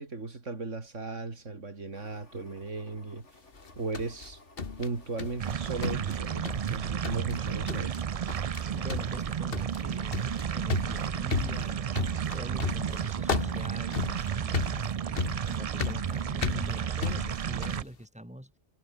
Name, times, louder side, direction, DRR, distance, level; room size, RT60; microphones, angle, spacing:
voice 1, 0.0-3.3 3.8-4.4 4.8-8.0, right 3 dB, 90° right, 3.4 m, -36 dB
sound 1, 1.9-15.6 16.1-16.2, left 2 dB, 75° left, 5.0 m, -56 dB
sound 2, 3.6-5.5 5.8-6.8 7.0-7.4 7.7-8.0 8.3-8.6 8.9-17.9, left 5 dB, 50° left, 1.8 m, -34 dB
sound 3, 5.4-17.8, right 8 dB, 55° right, 0.4 m, -32 dB
voice 2, 8.7-10.2 10.5-18.5, equal, 5° right, 4.0 m, -44 dB
omnidirectional pair, 1.2 m